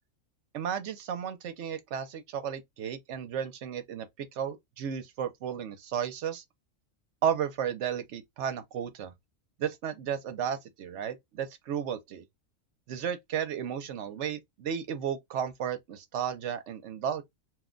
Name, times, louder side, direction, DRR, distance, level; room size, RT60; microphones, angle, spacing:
voice 1, 0.5-4.1 4.4-6.4 7.2-9.1 9.6-12.2 12.9-17.2, right 8 dB, 65° right, 0.9 m, -33 dB
2.5 x 2.1 x 3.6 m
omnidirectional pair, 1.4 m